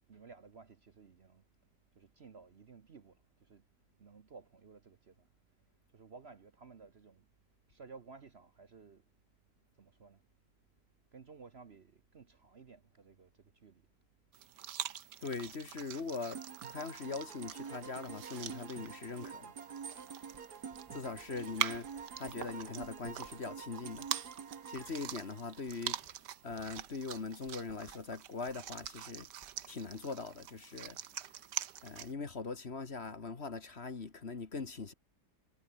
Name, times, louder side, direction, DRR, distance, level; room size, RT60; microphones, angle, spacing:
voice 1, 0.1-1.4 2.0-3.6 4.0-5.3 5.9-7.2 7.7-9.0 9.8-10.2 11.1-13.3 13.6-13.8 20.0-20.7 21.4-21.7, right 5 dB, 45° right, 1.2 m, -56 dB
sound 1, 14.3-32.1, right 11 dB, 85° right, 1.6 m, -44 dB
voice 2, 15.2-16.4 16.7-19.5 20.9-24.1 24.7-26.0 26.4-29.3 29.7-31.2 31.8-34.9, left 4 dB, 40° left, 1.8 m, -41 dB
sound 2, 16.3-26.1, right 6 dB, 65° right, 2.3 m, -48 dB
Writing, 20.3-25.2 25.5-30.2, right 1 dB, 20° right, 8.3 m, -65 dB
omnidirectional pair, 1.8 m